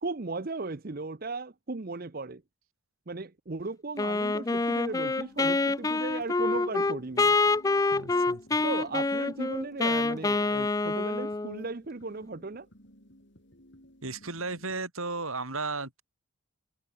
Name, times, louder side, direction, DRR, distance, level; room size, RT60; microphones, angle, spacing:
voice 1, 0.0-2.4 3.1-7.3 8.6-12.7, right 3 dB, 40° right, 0.7 m, -36 dB
Wind instrument woodwind instrument, 4.0-11.6, left 3 dB, 15° left, 0.3 m, -26 dB
sound 1, 4.9-14.8, equal, 55° left, 5.8 m, -56 dB
voice 2, 7.9-8.4 14.0-16.0, right 3 dB, 75° right, 6.5 m, -34 dB
head